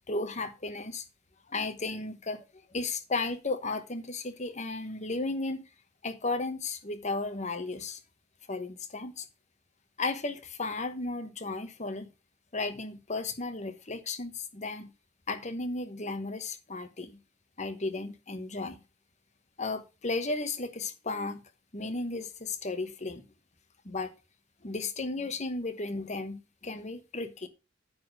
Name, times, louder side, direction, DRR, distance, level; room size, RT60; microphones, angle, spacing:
voice 1, 0.1-1.0 1.5-2.4 2.7-5.6 6.0-8.0 8.5-9.3 10.0-12.1 12.5-14.9 15.3-17.2 17.6-18.8 19.6-21.4 21.7-23.3 23.8-24.1 24.6-27.5, left 3 dB, 40° left, 1.2 m, -34 dB
9.4 x 4.2 x 6.5 m
head